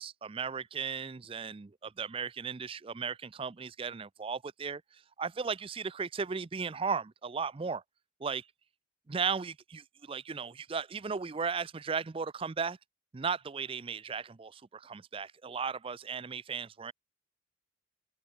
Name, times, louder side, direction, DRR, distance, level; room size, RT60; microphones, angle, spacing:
voice 1, 0.0-7.8 8.2-8.5 9.1-12.8 13.1-16.9, right 5 dB, 25° right, 0.4 m, -36 dB
open air
head